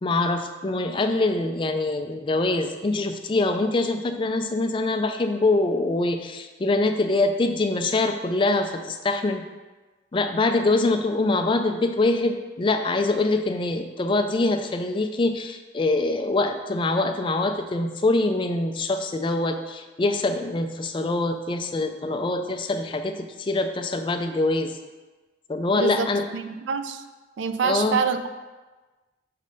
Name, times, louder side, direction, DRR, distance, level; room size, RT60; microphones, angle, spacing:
voice 1, 0.0-9.4 10.1-24.8 25.5-26.3 27.6-28.0, left 2 dB, 25° left, 7 dB, 0.3 m, -24 dB
voice 2, 25.8-27.0 27.4-28.3, right 5 dB, 85° right, 9 dB, 0.4 m, -26 dB
6.5 x 3.2 x 5.2 m, 1.2 s
head